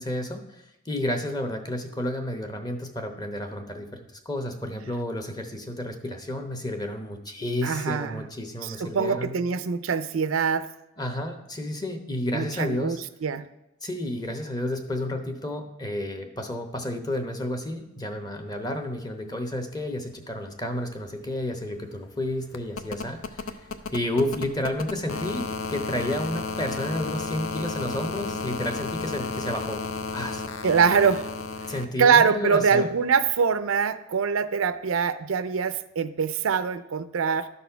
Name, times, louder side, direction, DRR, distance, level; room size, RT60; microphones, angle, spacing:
voice 1, 0.0-4.0 4.2-9.4 11.0-13.0 13.8-29.8 30.1-30.4 31.7-32.9, left 1 dB, 20° left, 6 dB, 0.9 m, -31 dB
voice 2, 7.6-8.2 8.6-10.7 12.3-13.5 30.6-31.3 32.0-37.5, right 6 dB, 75° right, 12 dB, 0.5 m, -23 dB
sound 1, 20.6-20.7 20.9-31.9 33.3-33.4, left 4 dB, 70° left, 0.6 m, -33 dB
12.0 x 4.2 x 5.6 m, 0.95 s
head